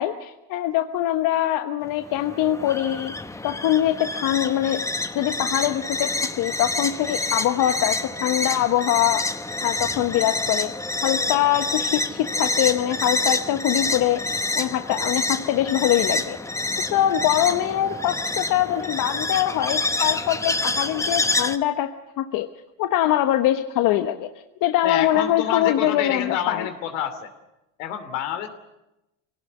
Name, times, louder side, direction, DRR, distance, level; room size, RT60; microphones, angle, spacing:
voice 1, 0.0-3.1 3.4-4.8 5.1-9.2 9.6-10.7 11.0-16.4 16.9-22.5 22.8-24.3 24.6-26.7, left 12 dB, 60° left, 7 dB, 1.3 m, -23 dB
sound 1, 1.8-21.6, left 2 dB, 10° left, 1.0 m, -27 dB
voice 2, 24.8-27.3 27.8-28.5, left 10 dB, 80° left, 9 dB, 3.0 m, -28 dB
24.5 x 18.0 x 8.1 m, 0.95 s
supercardioid pair, 95°, 38 cm